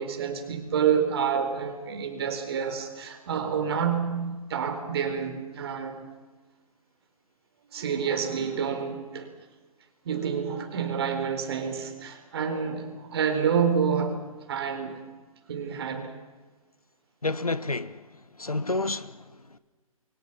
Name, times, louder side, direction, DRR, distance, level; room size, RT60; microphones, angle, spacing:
voice 1, 0.0-6.0 7.7-9.3 10.0-14.2 14.5-15.0 15.5-16.1, right 7 dB, 45° right, 4.3 m, -28 dB
voice 2, 17.2-18.1 18.4-19.6, left 2 dB, 80° left, 1.3 m, -30 dB
29.0 x 24.0 x 5.9 m
figure-of-eight pair, 130°, 18 cm